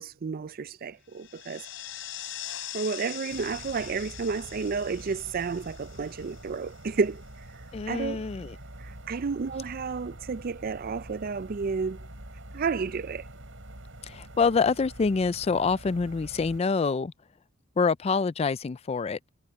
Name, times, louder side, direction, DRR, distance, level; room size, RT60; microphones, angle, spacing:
voice 1, 0.0-1.6 2.7-7.2 7.9-8.2 8.8-12.0 12.5-13.2, right 5 dB, 50° right, 0.4 m, -31 dB
sound 1, 1.1-6.9, left 12 dB, 75° left, 3.7 m, -42 dB
sound 2, 3.3-16.6, right 1 dB, 75° right, 5.5 m, -46 dB
voice 2, 7.7-8.6 14.0-17.1 17.8-19.3, left 4 dB, 30° left, 0.3 m, -26 dB
head